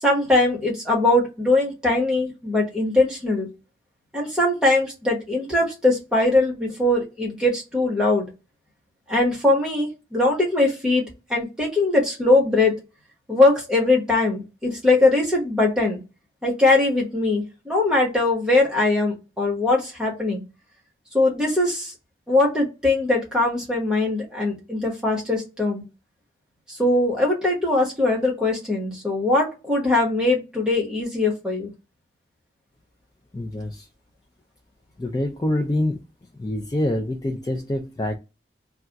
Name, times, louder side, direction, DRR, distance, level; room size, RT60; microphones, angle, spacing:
voice 1, 0.0-3.5 4.1-8.3 9.1-11.0 11.3-12.7 13.3-16.0 16.4-20.4 21.1-21.9 22.3-25.8 26.7-31.7, left 2 dB, 5° right, 1.0 m, -21 dB
voice 2, 33.3-33.9 35.0-36.0 36.4-38.2, left 1 dB, 20° left, 0.3 m, -25 dB
2.3 x 2.2 x 3.9 m
head